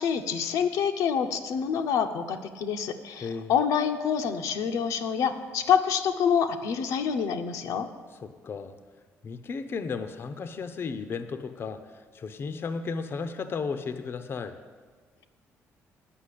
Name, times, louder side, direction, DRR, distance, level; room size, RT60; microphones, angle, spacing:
voice 1, 0.0-7.9, left 7 dB, 85° left, 5 dB, 0.7 m, -27 dB
voice 2, 3.2-3.6 8.1-8.7 9.2-14.6, left 5 dB, 45° left, 9 dB, 0.6 m, -34 dB
9.7 x 5.6 x 8.4 m, 1.5 s
cardioid pair, 100°, 6 cm